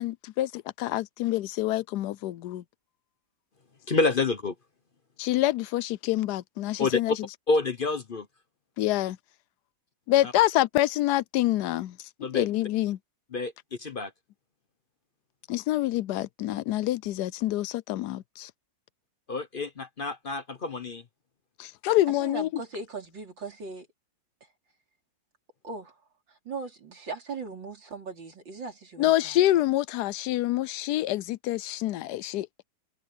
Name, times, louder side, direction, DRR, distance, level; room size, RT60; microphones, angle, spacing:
voice 1, 0.0-2.6 5.2-7.1 8.8-9.2 10.1-12.0 12.3-13.0 15.5-18.5 21.6-22.5 29.0-32.5, left 15 dB, 70° left, 1.0 m, -26 dB
voice 2, 3.9-4.5 6.8-7.2 7.5-8.3 10.2-10.3 12.2-12.5 13.3-13.5 13.8-14.1 19.3-21.0, left 3 dB, 40° left, 0.8 m, -28 dB
voice 3, 22.2-23.9 25.6-26.0 26.3-29.4, right 4 dB, 85° right, 4.6 m, -39 dB
omnidirectional pair, 2.0 m